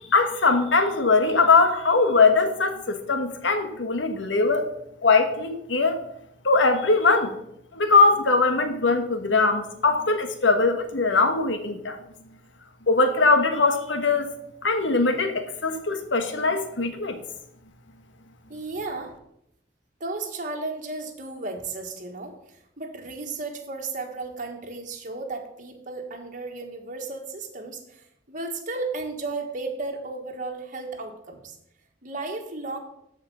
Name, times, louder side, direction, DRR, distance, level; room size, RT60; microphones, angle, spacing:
voice 1, 0.1-4.7 5.0-6.0 6.4-7.4 7.7-12.0 12.9-14.3 14.6-17.2, left 3 dB, 80° left, 8 dB, 1.3 m, -21 dB
voice 2, 18.5-19.1 20.0-22.3 22.8-27.8 28.3-31.5 32.0-32.8, right 3 dB, 45° right, 2 dB, 1.5 m, -34 dB
13.5 x 5.1 x 5.5 m, 0.77 s
head